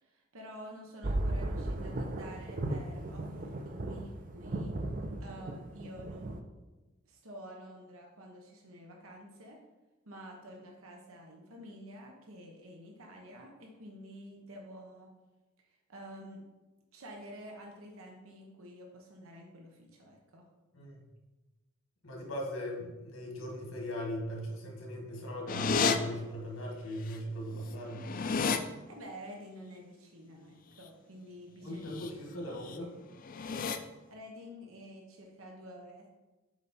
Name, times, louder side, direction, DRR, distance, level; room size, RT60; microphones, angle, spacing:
voice 1, 0.0-4.8 5.2-6.4 7.0-9.6 10.0-15.1 15.7-16.4 16.9-20.5 28.4-31.8 34.1-36.1, equal, 90° right, 1 dB, 1.1 m, -49 dB
sound 1, 1.0-6.4, right 1 dB, 40° right, 0.6 m, -36 dB
voice 2, 22.0-28.1 31.6-32.9, equal, 85° left, 0 dB, 1.8 m, -39 dB
sound 2, 25.5-26.0 27.1-27.2 27.5-28.6 31.8-32.1 32.5-32.8 33.2-33.8, left 5 dB, 40° left, 0.4 m, -31 dB
7.2 x 4.5 x 4.3 m, 1.1 s
head